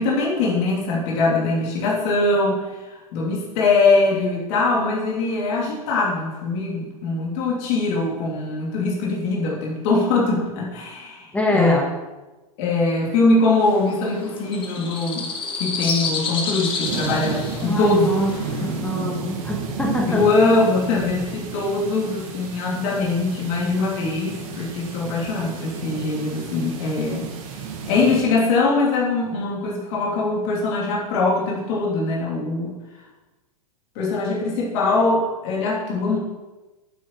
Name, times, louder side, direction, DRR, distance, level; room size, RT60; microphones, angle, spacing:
voice 1, 0.0-11.8 12.6-15.3 15.6-18.1 20.1-27.3 27.9-32.7 33.9-36.2, left 3 dB, 50° left, -4 dB, 3.1 m, -22 dB
voice 2, 11.3-11.9 17.6-18.3 18.8-20.2, left 1 dB, 5° left, -1 dB, 2.1 m, -23 dB
sound 1, 13.6-18.8, left 4 dB, 25° left, 1.6 m, -30 dB
sound 2, 16.8-28.2, right 5 dB, 60° right, 2.4 m, -32 dB
8.8 x 8.6 x 4.8 m, 1.2 s
hypercardioid pair, 130°, 19 cm